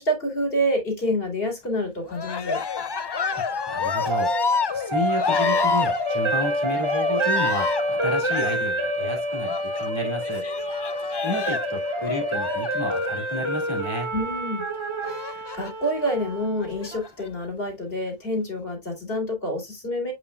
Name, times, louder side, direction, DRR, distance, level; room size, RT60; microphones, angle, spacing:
voice 1, 0.0-2.6 14.1-14.7 15.1-20.1, equal, 70° left, 3.2 m, -27 dB
Cheering, 2.1-13.8 15.0-15.9 16.6-17.3, left 5 dB, 40° left, 0.3 m, -29 dB
sound 1, 2.9-17.0, right 1 dB, 30° right, 1.0 m, -28 dB
voice 2, 3.3-4.3 4.7-10.4 11.2-14.1, left 1 dB, 25° left, 2.6 m, -31 dB
8.2 x 5.0 x 2.3 m
omnidirectional pair, 1.0 m